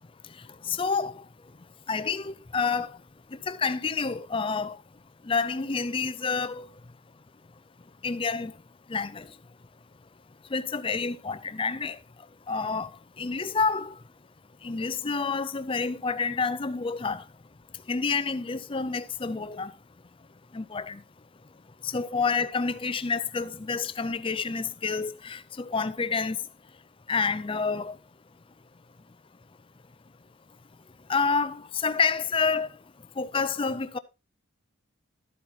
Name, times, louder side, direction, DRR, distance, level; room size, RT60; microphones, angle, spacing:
voice 1, 0.7-1.2 1.9-3.0 3.4-4.8 5.2-6.7 8.0-8.5 8.9-9.3 10.5-12.0 12.5-14.0 14.6-17.2 17.9-19.7 20.5-21.0 21.8-26.4 27.1-28.0 31.1-32.7 33.2-34.0, left 5 dB, 25° left, 0.4 m, -28 dB
12.5 x 8.3 x 2.8 m
head